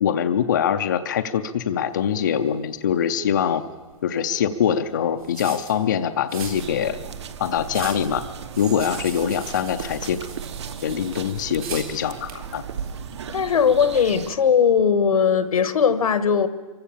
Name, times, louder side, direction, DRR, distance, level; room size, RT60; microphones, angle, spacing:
voice 1, 0.0-3.6 4.0-7.0 7.4-8.2 8.6-10.3 10.8-12.6, left 8 dB, 35° left, 0.5 m, -23 dB
sound 1, 1.9-14.1, right 5 dB, 75° right, 4.0 m, -41 dB
sound 2, 6.3-14.3, right 7 dB, 50° right, 1.1 m, -36 dB
voice 2, 13.3-16.5, left 7 dB, 85° left, 1.4 m, -19 dB
23.5 x 15.5 x 7.3 m
hypercardioid pair, 180°, 18 cm